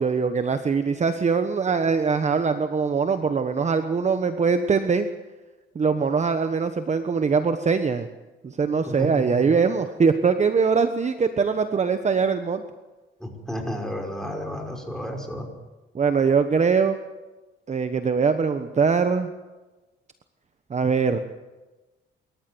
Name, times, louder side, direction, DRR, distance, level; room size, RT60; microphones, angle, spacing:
voice 1, 0.0-5.1 5.7-8.1 8.4-12.6 15.9-17.0 17.7-19.3 20.7-21.2, right 5 dB, 35° right, 8 dB, 1.2 m, -22 dB
voice 2, 8.9-9.6 13.2-15.5, equal, ahead, 2 dB, 5.7 m, -32 dB
25.5 x 14.0 x 8.0 m, 1.2 s
cardioid pair, 90°, 20 cm